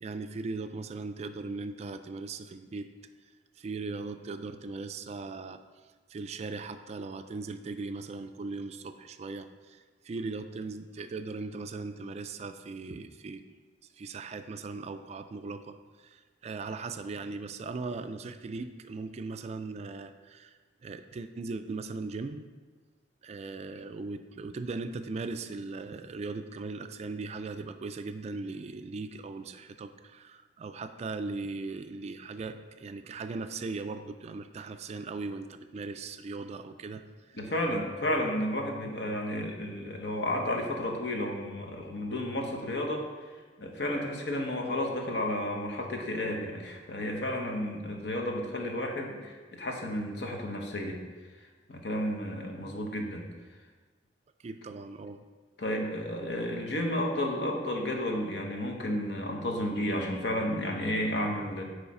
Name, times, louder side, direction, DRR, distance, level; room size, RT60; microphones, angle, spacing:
voice 1, 0.0-2.9 3.6-5.6 6.1-13.4 14.0-22.5 23.2-37.0 37.3-37.5 54.4-55.2, right 3 dB, 40° right, 9 dB, 0.3 m, -39 dB
voice 2, 37.3-43.0 43.6-51.0 51.7-53.2 55.6-61.6, left 1 dB, 70° left, 1 dB, 1.0 m, -32 dB
8.2 x 3.2 x 4.8 m, 1.4 s
head